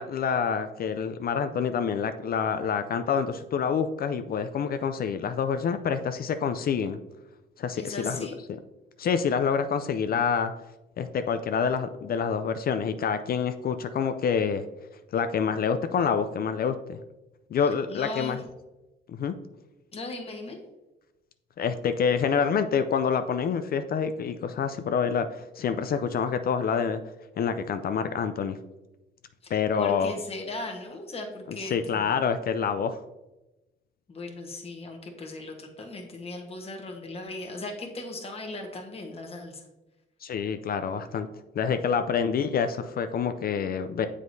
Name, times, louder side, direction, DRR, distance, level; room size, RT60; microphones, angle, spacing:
voice 1, 0.0-7.0 7.6-8.3 9.0-10.5 11.0-14.6 15.1-17.0 17.5-18.4 19.1-19.4 21.6-27.0 27.4-28.6 29.5-30.1 31.6-33.0 40.2-41.3 41.5-44.1, left 6 dB, 50° left, 9 dB, 0.4 m, -27 dB
voice 2, 7.7-8.4 17.9-18.4 19.9-20.6 29.8-32.1 34.1-39.6, left 2 dB, 30° left, 1 dB, 1.1 m, -37 dB
7.4 x 4.9 x 2.7 m, 1.0 s
cardioid pair, 90°, 20 cm